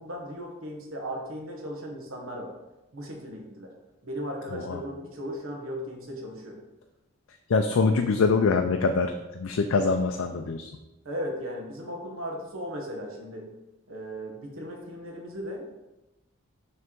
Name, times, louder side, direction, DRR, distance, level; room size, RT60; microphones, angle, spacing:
voice 1, 0.0-2.5 2.9-3.7 4.0-6.6 11.0-13.5 13.9-15.7, equal, 85° right, 0 dB, 1.3 m, -36 dB
voice 2, 7.5-10.7, left 4 dB, 80° left, 5 dB, 0.4 m, -24 dB
6.2 x 3.4 x 4.5 m, 1.0 s
head